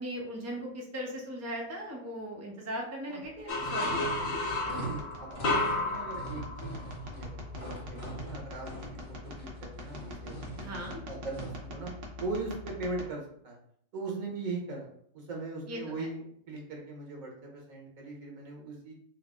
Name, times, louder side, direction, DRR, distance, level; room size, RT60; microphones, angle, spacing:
voice 1, 0.0-4.1 10.6-11.0 15.7-16.1, equal, 15° right, -1 dB, 0.6 m, -38 dB
sound 1, 3.2-13.0, left 1 dB, 50° right, 0.9 m, -45 dB
sound 2, 3.5-7.1, left 2 dB, 60° left, 1.0 m, -32 dB
sound 3, 3.6-11.7, right 2 dB, 80° left, 1.9 m, -43 dB
voice 2, 4.6-6.8 7.1-8.8 9.1-11.9 12.2-13.6 13.9-14.9 15.1-18.9, right 3 dB, 80° right, 0 dB, 1.5 m, -40 dB
4.6 x 2.0 x 3.5 m, 0.65 s
omnidirectional pair, 1.4 m